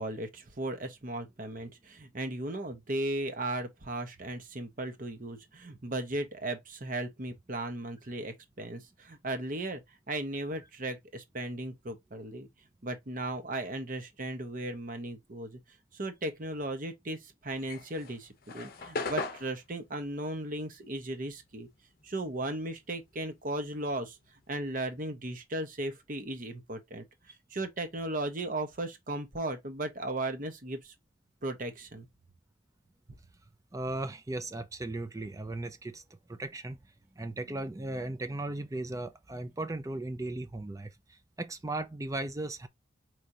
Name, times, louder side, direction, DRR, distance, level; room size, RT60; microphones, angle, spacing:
voice 1, 0.0-9.8 10.1-12.5 12.8-15.6 15.9-21.7 22.0-24.2 24.5-27.0 27.5-30.9 31.4-32.1, right 1 dB, 45° right, 1.0 m, -36 dB
sound 1, 17.5-22.2 22.5-24.5, left 3 dB, 50° left, 0.7 m, -40 dB
voice 2, 33.7-36.0 36.3-36.8 37.2-42.7, right 2 dB, 15° right, 0.5 m, -37 dB
5.0 x 3.1 x 2.7 m
head